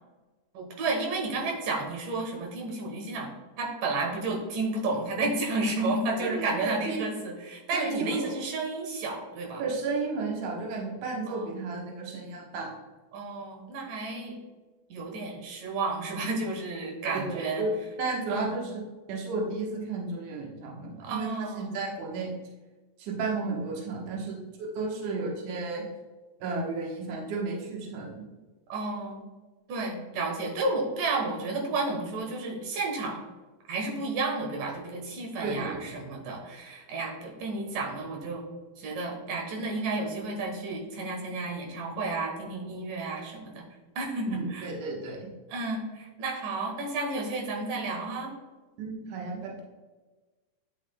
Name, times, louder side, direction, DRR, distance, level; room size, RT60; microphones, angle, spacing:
voice 1, 0.5-3.3 3.6-9.6 11.3-11.5 13.1-14.4 14.9-17.7 18.3-18.5 21.0-21.7 28.7-29.2 29.7-33.2 33.7-38.5 38.8-43.6 44.0-44.7 45.5-48.3, right 3 dB, 85° right, -1 dB, 2.8 m, -32 dB
voice 2, 6.2-7.0 7.7-8.3 9.6-12.7 17.0-17.7 18.0-18.8 19.1-22.3 23.0-24.4 24.8-25.8 26.4-28.2 35.4-35.8 44.3-45.2 48.8-49.6, right 3 dB, 70° right, -2 dB, 2.6 m, -33 dB
10.0 x 5.8 x 2.2 m, 1.3 s
omnidirectional pair, 3.7 m